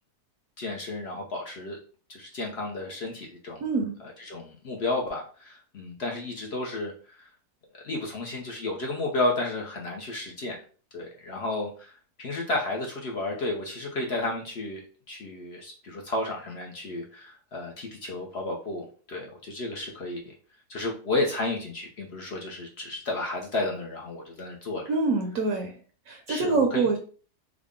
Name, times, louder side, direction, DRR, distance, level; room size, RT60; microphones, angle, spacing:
voice 1, 0.6-1.8 2.1-3.6 4.0-7.3 7.7-10.6 10.9-14.8 15.1-20.2 20.7-24.9 26.3-27.0, left 2 dB, 55° left, 0 dB, 0.8 m, -32 dB
voice 2, 3.6-4.0 24.9-25.7 26.1-27.0, right 3 dB, 70° right, 3 dB, 1.0 m, -25 dB
3.6 x 2.1 x 3.5 m, 0.40 s
omnidirectional pair, 1.6 m